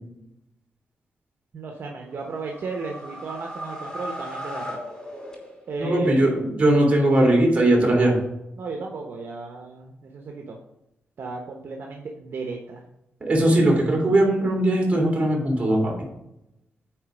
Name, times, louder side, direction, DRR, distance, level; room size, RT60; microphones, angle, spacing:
voice 1, 1.5-4.8 5.7-6.2 8.6-10.6 11.2-12.8, right 4 dB, 60° right, 2 dB, 1.0 m, -34 dB
sound 1, 2.1-5.9, equal, 15° left, 3.1 m, -37 dB
voice 2, 5.8-8.1 13.2-15.9, right 1 dB, 30° right, -2 dB, 3.3 m, -19 dB
9.3 x 4.1 x 5.1 m, 0.87 s
wide cardioid pair, 110°, 4 cm